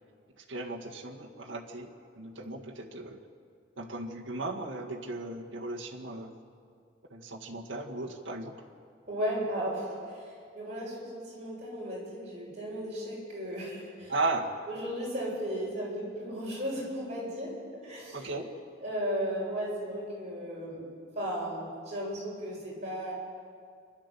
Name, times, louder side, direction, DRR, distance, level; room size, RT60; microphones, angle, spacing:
voice 1, 0.5-1.9 2.1-3.2 3.8-6.3 7.1-8.5 14.1-14.5 18.1-18.5, right 2 dB, 85° right, -1 dB, 1.9 m, -36 dB
voice 2, 9.1-10.0 10.5-14.1 14.7-17.5 17.8-18.4 18.8-20.8 21.2-23.1, equal, 35° right, -5 dB, 7.3 m, -35 dB
28.0 x 12.0 x 8.4 m, 2.2 s
head